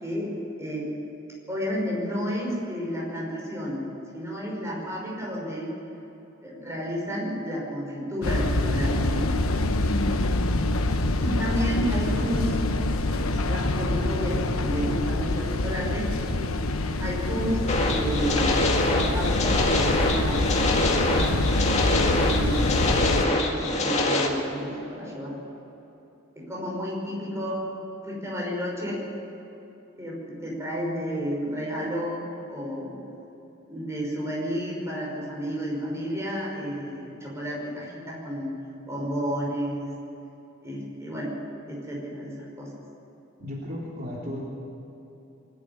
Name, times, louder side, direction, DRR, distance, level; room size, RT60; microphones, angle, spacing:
voice 1, 1.5-3.8 4.1-5.7 6.4-9.3 11.2-12.5 13.1-16.1 16.8-17.6 17.9-21.4 22.1-25.4 26.4-27.6 28.0-29.0 30.0-32.2 32.5-33.0 33.6-38.5 38.9-39.9 40.6-41.4 41.7-42.7, equal, 15° right, -4 dB, 5.7 m, -31 dB
sound 1, 8.2-23.3, left 2 dB, 85° left, 1.1 m, -25 dB
sound 2, 17.7-24.3, left 2 dB, 35° left, 2.0 m, -25 dB
voice 2, 43.4-44.4, left 1 dB, 45° right, -5 dB, 3.2 m, -34 dB
23.5 x 11.5 x 9.8 m, 3.0 s
head